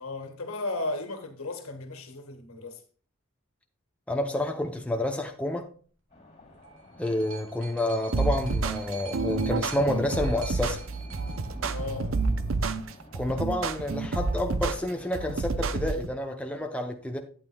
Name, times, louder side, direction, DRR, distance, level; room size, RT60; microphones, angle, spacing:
voice 1, 0.0-2.8 11.7-12.2, left 2 dB, 75° left, 1.6 m, -35 dB
voice 2, 4.1-5.7 7.0-10.8 13.1-17.2, left 1 dB, 5° left, 0.7 m, -29 dB
sound 1, 6.1-15.4, left 1 dB, 30° left, 3.1 m, -51 dB
sound 2, 6.3-12.3 13.2-13.3, right 6 dB, 80° right, 2.7 m, -47 dB
sound 3, 8.1-16.1, right 3 dB, 60° right, 0.6 m, -29 dB
11.5 x 8.9 x 2.3 m
head